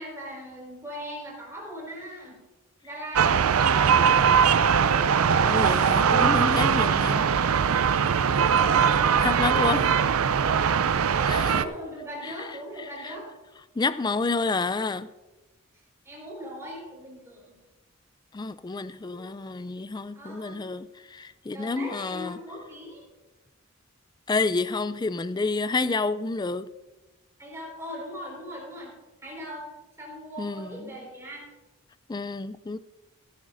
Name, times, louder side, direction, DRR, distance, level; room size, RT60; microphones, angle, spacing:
voice 1, 0.0-2.4 2.8-4.4 6.8-7.3 8.4-10.0 10.6-13.3 16.0-17.5 19.0-19.7 20.1-20.6 21.5-23.1 27.4-28.9 29.2-29.7 30.0-31.4, equal, 15° right, 4.8 m, -40 dB
sound 1, 3.1-11.6, right 7 dB, 85° right, 0.5 m, -21 dB
voice 2, 5.4-7.3 8.4-8.5 8.9-9.9 10.6-11.6 12.8-13.1 13.8-15.1 18.3-22.4 24.3-26.7 30.4-31.0 32.1-32.8, left 3 dB, 20° left, 0.3 m, -29 dB
15.5 x 13.5 x 2.6 m
head